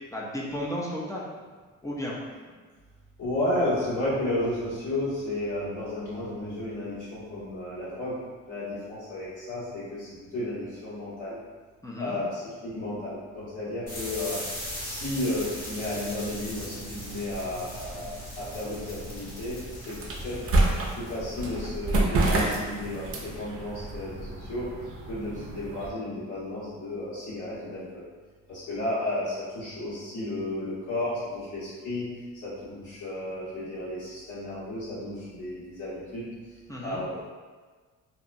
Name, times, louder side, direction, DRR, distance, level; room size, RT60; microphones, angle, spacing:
voice 1, 0.1-1.3 1.8-2.2 11.8-12.2 36.7-37.0, left 1 dB, 10° left, -5 dB, 0.5 m, -33 dB
voice 2, 3.2-8.1 8.5-11.3 12.0-14.4 14.8-18.0 18.4-19.6 19.9-20.0 20.2-20.4 20.9-24.7 25.1-28.0 28.5-32.1 32.4-36.2 36.8-37.3, left 1 dB, 70° left, -12 dB, 1.5 m, -33 dB
sound 1, 13.9-21.8, equal, 55° left, 1.5 m, -39 dB
sound 2, 16.8-25.9, right 2 dB, 50° right, 0.5 m, -30 dB
2.8 x 2.1 x 2.6 m, 1.4 s
cardioid pair, 90°, 30 cm